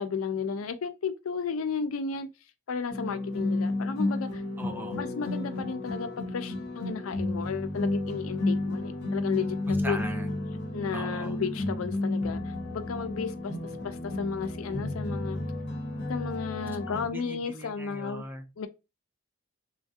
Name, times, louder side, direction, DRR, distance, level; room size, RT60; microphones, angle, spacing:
voice 1, 0.0-2.3 2.7-4.4 5.0-10.0 10.7-13.5 13.8-15.4 16.1-18.2 18.6-18.7, left 5 dB, 85° left, 0.5 m, -33 dB
sound 1, 2.9-17.1, left 2 dB, 55° left, 0.8 m, -32 dB
voice 2, 4.6-5.0 9.8-10.3 10.9-11.4 16.8-18.4, right 1 dB, 10° right, 0.5 m, -39 dB
3.1 x 2.4 x 2.6 m
head